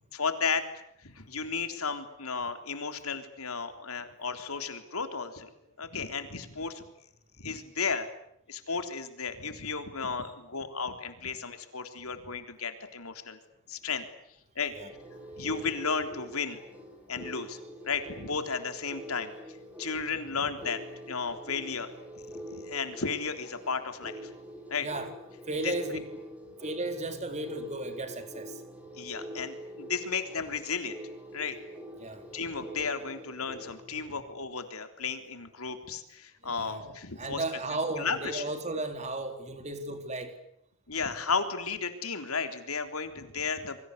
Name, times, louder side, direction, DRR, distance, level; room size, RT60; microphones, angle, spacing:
voice 1, 0.1-0.6 1.0-5.5 5.8-6.9 7.4-8.1 8.5-13.4 13.7-14.1 14.6-14.7 15.4-16.6 17.1-17.6 17.8-19.3 19.8-20.8 21.1-21.9 22.5-24.3 24.7-24.9 25.6-25.7 28.9-31.0 31.3-31.6 32.3-37.4 38.0-38.4 40.9-43.8, left 5 dB, 85° left, 8 dB, 3.6 m, -34 dB
voice 2, 14.7-15.2 24.8-25.1 25.5-26.2 26.6-28.6 32.0-32.2 36.4-40.4, right 2 dB, 30° right, 7 dB, 3.9 m, -35 dB
sound 1, 14.9-34.3, equal, 5° right, 7.0 m, -45 dB
27.5 x 24.0 x 8.3 m, 0.75 s
head